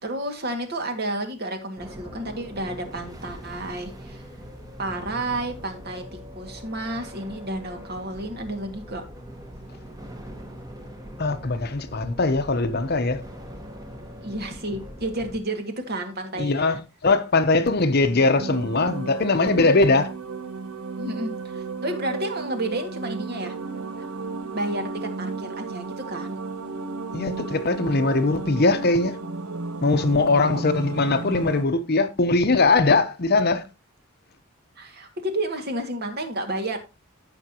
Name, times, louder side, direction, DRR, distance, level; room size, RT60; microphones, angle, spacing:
voice 1, 0.0-4.2 4.8-6.0 6.4-9.0 14.2-16.8 21.0-23.5 24.0-24.1 24.5-26.4 30.4-30.6 34.8-36.8, right 1 dB, 50° right, 2.0 m, -31 dB
sound 1, 1.8-15.4, equal, 20° right, 1.4 m, -41 dB
voice 2, 11.2-13.2 16.4-20.1 27.1-29.2 29.8-33.6, left 3 dB, 45° left, 0.9 m, -21 dB
sound 2, 18.0-31.6, right 4 dB, 80° right, 0.7 m, -33 dB
15.0 x 5.9 x 2.9 m
head